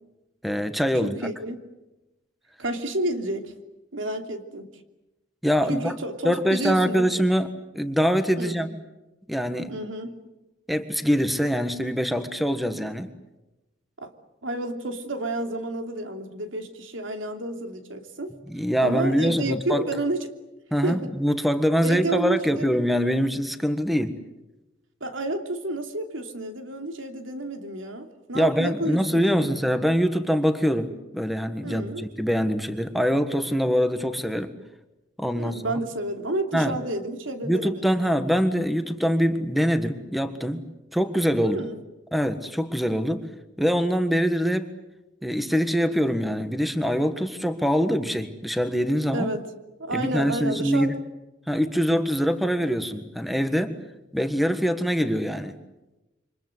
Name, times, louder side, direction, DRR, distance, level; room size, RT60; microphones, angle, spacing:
voice 1, 0.4-1.2 5.4-6.0 6.2-8.8 9.3-9.7 10.7-13.1 18.5-19.8 20.7-24.2 28.3-34.6 35.2-35.8 36.5-36.7 37.4-40.7 40.9-41.6 42.1-43.3 43.6-44.7 45.2-49.3 49.9-51.0 51.5-53.8 54.1-55.6, equal, ahead, 9 dB, 1.5 m, -24 dB
voice 2, 1.0-1.6 2.6-3.5 3.9-4.7 5.7-7.1 8.4-8.6 9.7-10.2 14.0-14.1 14.4-18.3 18.8-20.3 20.8-21.1 21.8-22.7 25.0-29.6 31.6-32.1 35.3-38.0 41.4-41.8 49.1-49.4 49.8-50.9, right 2 dB, 85° right, 6 dB, 3.0 m, -30 dB
28.5 x 25.5 x 8.1 m, 0.99 s
head